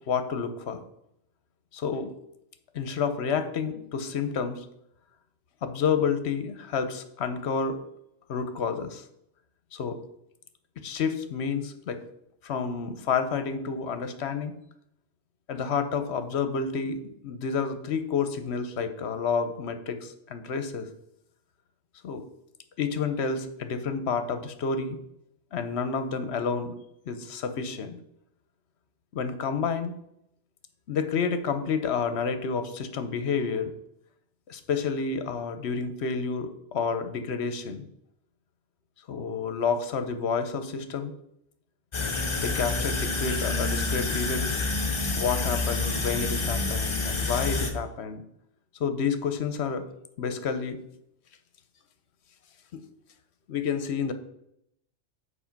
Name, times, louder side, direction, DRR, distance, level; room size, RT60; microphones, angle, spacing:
voice 1, 0.1-0.9 1.7-2.2 2.7-4.7 5.6-7.8 8.3-9.0 9.7-10.0 10.8-12.0 12.4-14.5 15.5-20.9 22.0-22.2 22.8-25.0 25.5-26.8 27.1-28.0 29.1-29.9 30.9-33.7 34.5-37.9 39.1-41.1 42.4-44.6 45.2-48.2 48.8-49.8 50.2-50.8 52.7-52.8 53.5-54.1, left 5 dB, 60° left, 9 dB, 1.0 m, -29 dB
sound 1, 41.9-47.7, left 3 dB, 25° left, 0.8 m, -28 dB
7.2 x 4.3 x 5.8 m, 0.77 s
omnidirectional pair, 1.3 m